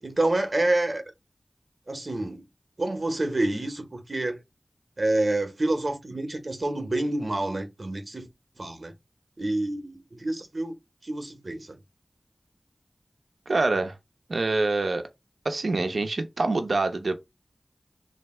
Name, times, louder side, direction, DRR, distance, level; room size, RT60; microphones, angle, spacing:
voice 1, 0.0-1.0 1.9-2.4 2.8-4.4 5.0-8.3 8.6-8.9 9.4-10.7 11.0-11.8, right 2 dB, 55° right, 1.0 m, -28 dB
voice 2, 13.5-14.0 14.3-15.0 15.4-17.2, right 3 dB, 80° right, 0.7 m, -25 dB
3.3 x 2.7 x 4.3 m
wide cardioid pair, 45°, 0 cm